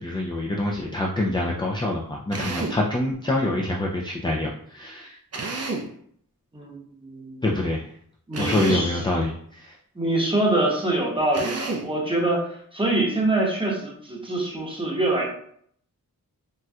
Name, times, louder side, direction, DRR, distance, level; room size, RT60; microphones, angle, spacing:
voice 1, 0.0-5.2 7.4-7.9 8.4-9.7, left 1 dB, 15° left, -1 dB, 0.3 m, -26 dB
Drill, 2.3-2.9 5.3-6.0 8.3-8.9 11.3-11.9, right 3 dB, 45° right, 0.5 m, -30 dB
voice 2, 6.5-7.4 8.3-9.0 9.9-15.2, right 2 dB, 15° right, -3 dB, 0.8 m, -25 dB
4.1 x 2.2 x 2.3 m, 0.64 s
wide cardioid pair, 95°, 36 cm